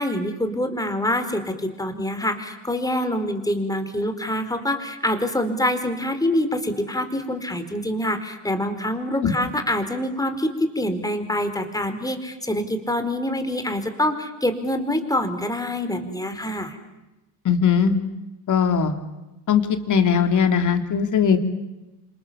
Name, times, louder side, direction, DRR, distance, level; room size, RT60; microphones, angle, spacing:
voice 1, 0.0-16.8, left 1 dB, 10° left, 8 dB, 4.3 m, -25 dB
voice 2, 17.5-17.9 18.5-18.9 19.5-21.4, left 7 dB, 40° left, 6 dB, 3.5 m, -19 dB
29.0 x 26.5 x 7.3 m, 1.0 s
supercardioid pair, 95°, 46 cm